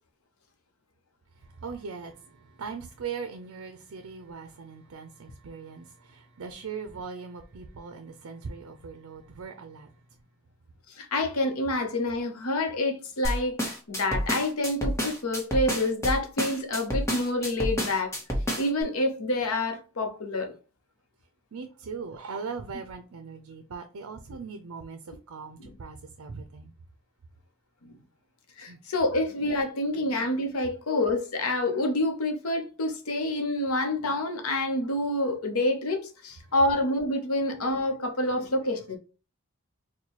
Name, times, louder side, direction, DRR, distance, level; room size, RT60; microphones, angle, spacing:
voice 1, 1.3-10.2 21.5-26.7 28.6-28.8 36.4-36.5 38.2-38.3, right 5 dB, 75° right, 0.5 m, -40 dB
voice 2, 11.0-18.1 18.6-20.5 25.6-25.7 27.8-27.9 28.6-39.0, left 1 dB, 80° left, 0.8 m, -27 dB
sound 1, 13.2-18.8, equal, 15° left, 0.9 m, -29 dB
4.4 x 2.2 x 2.9 m
head